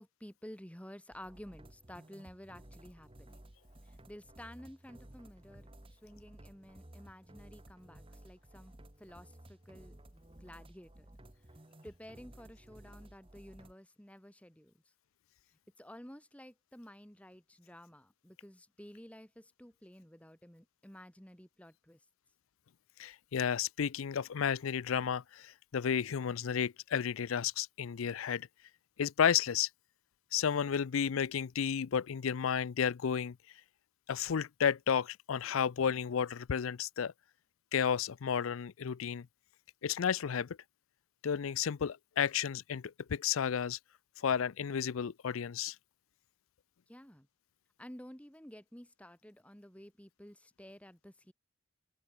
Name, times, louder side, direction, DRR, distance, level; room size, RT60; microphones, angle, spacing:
voice 1, 0.0-3.4 3.8-8.7 9.0-11.1 11.8-14.7 15.8-22.0 46.9-47.3 47.8-51.3, equal, 5° left, 1.6 m, -52 dB
sound 1, 1.1-13.7, right 1 dB, 25° right, 1.6 m, -56 dB
voice 2, 23.0-28.5 29.0-29.7 30.3-33.3 34.1-37.1 37.7-39.2 39.8-40.5 41.2-42.8 43.1-43.8 44.2-45.7, left 7 dB, 80° left, 0.5 m, -32 dB
open air
head